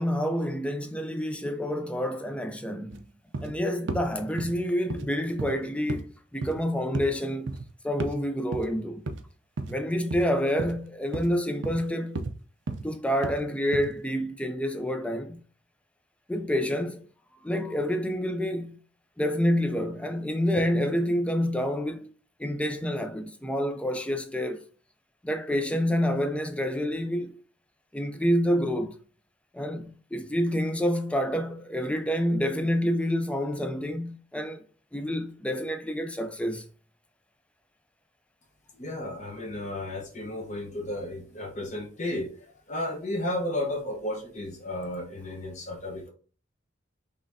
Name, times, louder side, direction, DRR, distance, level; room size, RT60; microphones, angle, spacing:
voice 1, 0.0-3.0 3.4-7.6 7.8-9.0 9.7-12.2 12.8-15.4 16.3-17.1 17.4-18.8 19.2-22.1 22.4-24.7 25.2-27.3 27.9-29.0 29.5-34.6 34.9-36.7, equal, 5° left, 0.4 m, -28 dB
sound 1, 2.9-3.0 3.3-3.6 3.9-4.1 4.4-4.6 4.9-5.1 5.4-5.6 5.9-6.1 6.4-6.6 6.9-7.1 7.5-7.7 8.0-8.2 8.5-8.7 9.1-9.2 9.6-9.8 10.1-10.2 10.6-10.8 11.1-11.4 11.6-11.8 12.2-12.4 12.7-12.9 13.2-13.4 13.7-13.9, right 3 dB, 60° right, 0.5 m, -33 dB
voice 2, 38.7-42.3 42.7-46.1, left 1 dB, 35° left, 1.0 m, -33 dB
5.3 x 3.3 x 2.7 m
head